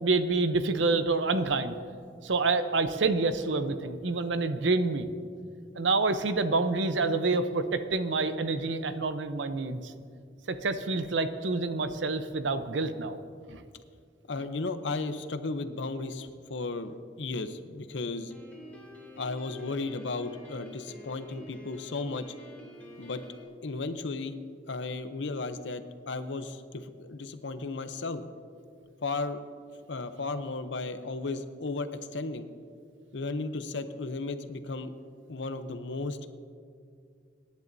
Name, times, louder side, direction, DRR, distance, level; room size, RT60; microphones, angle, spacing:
voice 1, 0.0-1.7 2.2-5.1 5.8-9.9 10.5-13.2 13.5-13.6, right 3 dB, 75° right, 10 dB, 0.7 m, -27 dB
voice 2, 14.3-18.3 19.2-22.3 23.0-23.2 23.6-24.3 24.7-28.2 29.0-29.4 29.9-32.5 33.1-34.9 35.3-36.3, left 3 dB, 70° left, 10 dB, 0.7 m, -34 dB
Piano, 18.3-23.4, equal, 10° left, 2.4 m, -48 dB
24.5 x 10.5 x 2.7 m, 2.3 s
head